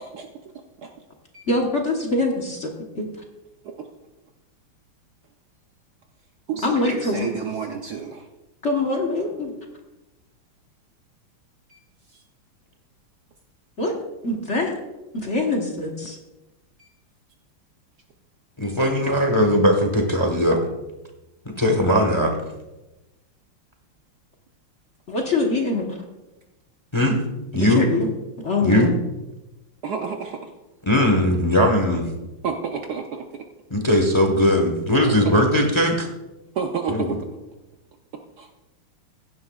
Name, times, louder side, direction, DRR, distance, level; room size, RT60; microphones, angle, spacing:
voice 1, 1.5-3.1 6.6-7.3 8.6-9.5 13.8-14.0 14.2-14.7 15.1-16.2 25.1-26.0 27.6-28.1 28.4-28.9, left 2 dB, 40° left, 1 dB, 1.3 m, -24 dB
voice 2, 6.5-8.2 18.6-18.7 29.8-30.4 32.4-33.2 35.0-35.1 36.6-37.2 38.4-38.5, right 6 dB, 65° right, 3 dB, 1.1 m, -29 dB
voice 3, 18.6-20.6 21.4-22.3 26.9-27.2 27.5-27.8 28.6-28.9 30.8-32.1 33.7-36.1 36.9-37.2, equal, 20° left, 3 dB, 1.0 m, -19 dB
16.0 x 11.0 x 2.4 m, 1.0 s
omnidirectional pair, 2.3 m